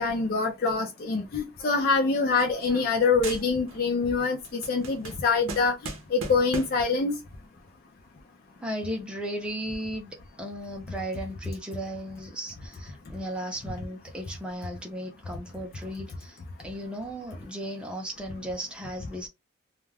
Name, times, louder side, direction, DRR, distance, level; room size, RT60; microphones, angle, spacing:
voice 1, 0.0-5.7 6.1-7.2, left 4 dB, 45° left, 0.4 m, -25 dB
sound 1, 1.6-3.0 3.2-3.9 4.2-6.9, right 3 dB, 75° right, 0.6 m, -40 dB
voice 2, 8.6-19.3, equal, 5° right, 0.5 m, -36 dB
2.3 x 2.1 x 3.2 m
head